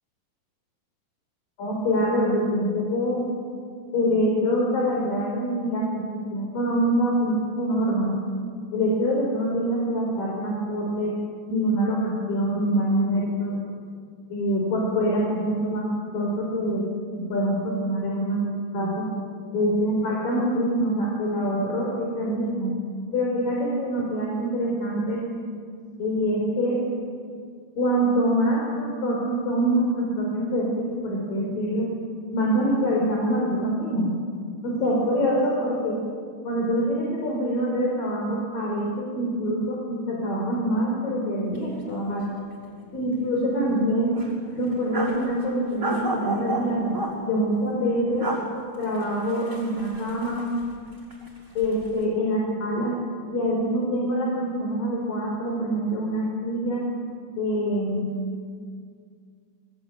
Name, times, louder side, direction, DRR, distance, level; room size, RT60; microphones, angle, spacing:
voice 1, 1.6-3.2 3.9-6.0 6.3-8.1 8.7-11.1 11.5-13.5 14.3-15.9 16.1-16.9 17.3-18.4 18.7-19.0 19.5-22.8 23.1-25.2 26.0-26.8 27.8-31.8 32.3-34.1 34.6-36.0 36.4-42.3 42.9-44.1 44.6-46.9 47.3-48.3 48.8-50.5 51.6-53.0 53.3-56.8 57.4-58.1, equal, 70° left, -2 dB, 6.0 m, -25 dB
sound 1, 41.5-41.6 41.9-42.0 42.5-43.2 43.5-43.6 44.1-45.2 45.8-47.1 48.0-48.4 48.8-50.8 51.1-51.9, right 1 dB, 20° right, 6.5 m, -32 dB
28.5 x 22.0 x 9.2 m, 2.1 s
omnidirectional pair, 4.1 m